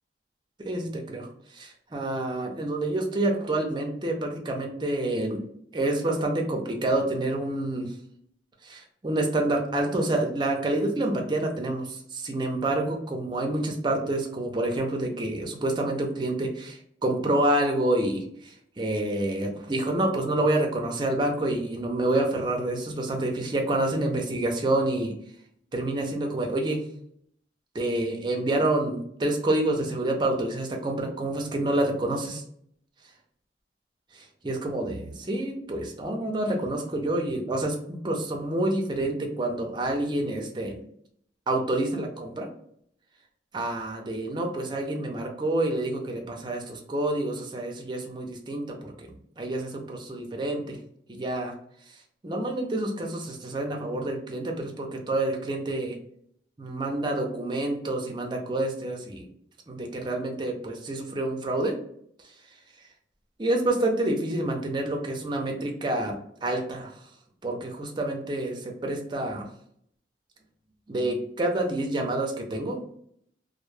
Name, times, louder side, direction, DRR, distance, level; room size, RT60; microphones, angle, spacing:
voice 1, 0.6-5.4 5.7-7.9 8.6-25.1 25.7-26.8 27.7-32.4 34.1-40.8 41.5-42.5 43.5-50.8 51.1-51.5 52.2-56.0 56.6-59.3 59.7-61.8 63.4-66.9 67.4-69.5 70.9-72.8, right 1 dB, 25° right, 2 dB, 0.4 m, -28 dB
2.1 x 2.0 x 3.1 m, 0.69 s
head